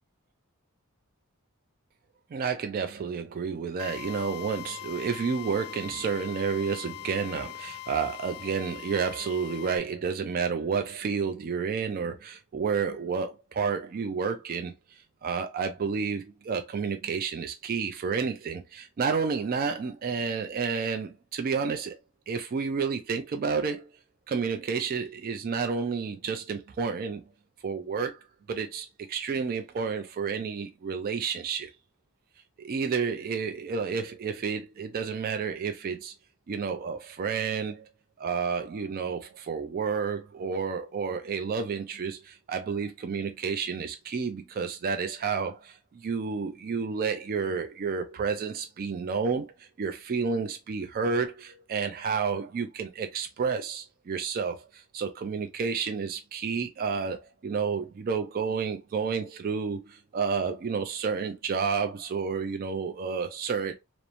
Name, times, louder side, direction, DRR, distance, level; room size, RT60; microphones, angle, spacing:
voice 1, 2.3-14.7 15.2-22.0 22.3-23.9 24.3-27.2 27.6-28.2 28.5-31.7 32.6-36.1 36.5-37.9 38.2-63.7, right 5 dB, 40° right, 0.3 m, -30 dB
Drill, 3.8-9.8, left 19 dB, 65° left, 0.4 m, -42 dB
2.9 x 2.0 x 2.5 m
head